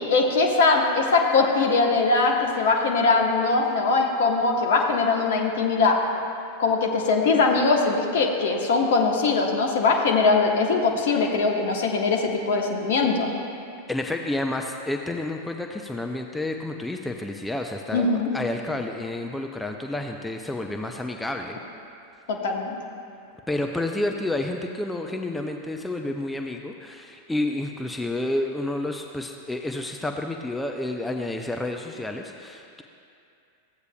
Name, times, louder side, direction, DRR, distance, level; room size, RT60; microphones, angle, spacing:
voice 1, 0.1-6.0 6.6-13.3 17.9-18.3 22.3-22.7, left 4 dB, 55° left, 1 dB, 1.0 m, -21 dB
voice 2, 13.9-21.6 23.5-32.8, left 2 dB, 5° left, 3 dB, 0.4 m, -30 dB
14.5 x 8.0 x 2.2 m, 2.5 s
figure-of-eight pair, 90°, 0 cm